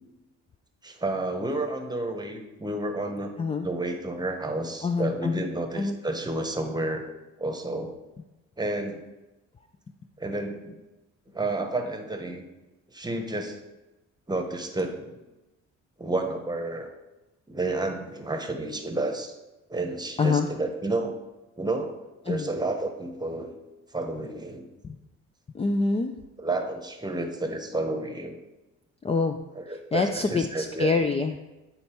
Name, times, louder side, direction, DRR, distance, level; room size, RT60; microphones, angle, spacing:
voice 1, 0.8-3.3 3.6-7.1 7.4-7.9 8.6-9.1 10.2-10.8 11.3-12.5 12.9-13.6 14.3-15.2 16.0-16.9 17.5-19.3 19.7-21.2 21.6-22.0 22.2-23.5 23.9-24.7 26.4-28.4 29.5-30.9, right 2 dB, 15° right, 4 dB, 1.1 m, -30 dB
voice 2, 4.8-5.4 5.8-6.0 20.2-20.5 22.3-22.5 24.8-25.0 25.5-26.1 29.0-29.4 29.9-31.5, left 4 dB, 20° left, 6 dB, 0.4 m, -26 dB
8.9 x 4.3 x 4.4 m, 1.0 s
cardioid pair, 90°, 30 cm